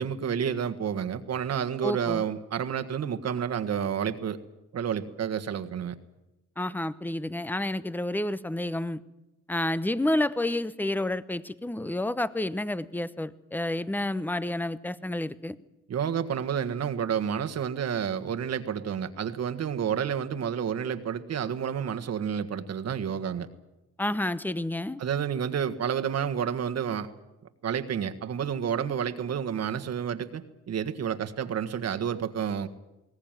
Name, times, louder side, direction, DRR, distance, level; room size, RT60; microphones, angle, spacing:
voice 1, 0.0-4.4 4.7-6.0 15.9-23.5 25.0-27.1 27.6-32.7, right 8 dB, 55° right, 8 dB, 1.6 m, -30 dB
voice 2, 1.8-2.2 6.6-9.0 9.5-15.6 24.0-25.0, left 1 dB, 5° left, 16 dB, 0.9 m, -30 dB
21.0 x 18.5 x 9.1 m, 0.97 s
cardioid pair, 90°, 30 cm